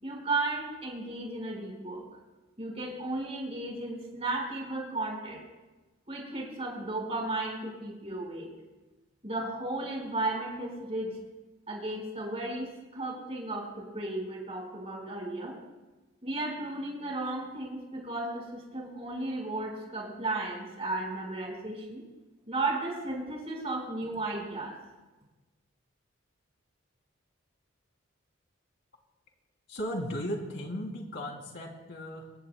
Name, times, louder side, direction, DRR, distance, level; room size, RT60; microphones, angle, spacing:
voice 1, 0.0-2.0 2.6-5.4 6.1-8.5 9.2-11.1 11.7-12.7 12.9-15.6 16.2-22.0 22.5-24.7, right 2 dB, 30° right, -1 dB, 4.8 m, -34 dB
voice 2, 29.7-32.3, equal, 55° left, 1 dB, 2.9 m, -36 dB
25.5 x 20.0 x 2.2 m, 1.1 s
head